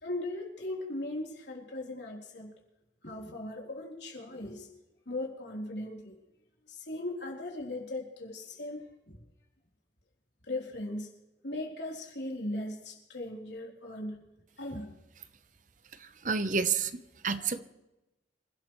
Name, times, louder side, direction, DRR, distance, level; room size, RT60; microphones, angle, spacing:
voice 1, 0.0-2.5 3.0-4.7 5.1-6.1 6.7-9.1 10.5-11.1 11.4-14.2 14.6-14.9 17.2-17.5, left 1 dB, 70° left, -1 dB, 3.8 m, -38 dB
voice 2, 16.2-17.6, right 5 dB, 45° right, 12 dB, 0.9 m, -29 dB
27.0 x 13.0 x 3.2 m, 0.98 s
head